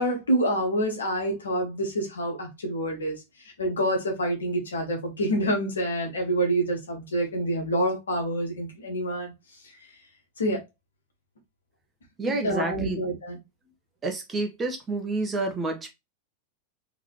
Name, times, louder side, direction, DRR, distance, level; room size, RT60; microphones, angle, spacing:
voice 1, 0.0-3.1 3.6-9.3 10.4-10.6 12.4-13.4, right 1 dB, 70° left, 1.6 m, -27 dB
voice 2, 12.2-13.0 14.0-15.9, right 3 dB, 20° right, 1.2 m, -29 dB
3.9 x 3.6 x 3.1 m
figure-of-eight pair, 90°, 0 cm